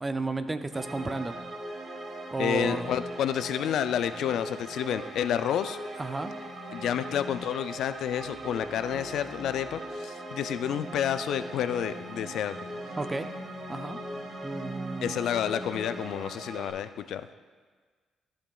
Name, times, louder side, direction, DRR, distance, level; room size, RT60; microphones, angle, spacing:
voice 1, 0.0-1.4 2.3-2.9 6.0-6.3 13.0-13.3 13.7-14.0 14.4-15.2, right 3 dB, 20° right, 10 dB, 0.4 m, -32 dB
sound 1, 0.7-16.7, right 2 dB, 45° right, 1.2 m, -40 dB
voice 2, 2.4-5.8 6.7-12.6 15.0-17.3, left 9 dB, 75° left, 12 dB, 0.3 m, -30 dB
sound 2, 6.4-16.0, left 5 dB, 45° left, 0.7 m, -48 dB
14.0 x 5.2 x 2.3 m, 1.5 s
cardioid pair, 90°, 0 cm